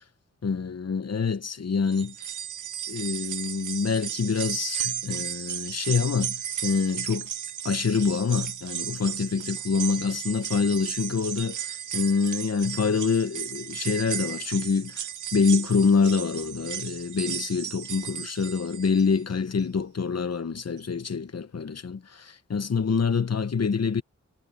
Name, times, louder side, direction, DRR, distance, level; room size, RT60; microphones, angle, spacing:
voice 1, 0.4-2.1 2.9-7.3 7.6-15.0 15.3-24.0, left 5 dB, 60° left, 1.0 m, -26 dB
sound 1, 1.9-19.2 19.6-19.7 20.8-20.9, right 10 dB, 90° right, 0.5 m, -34 dB
wide cardioid pair, 95°, 29 cm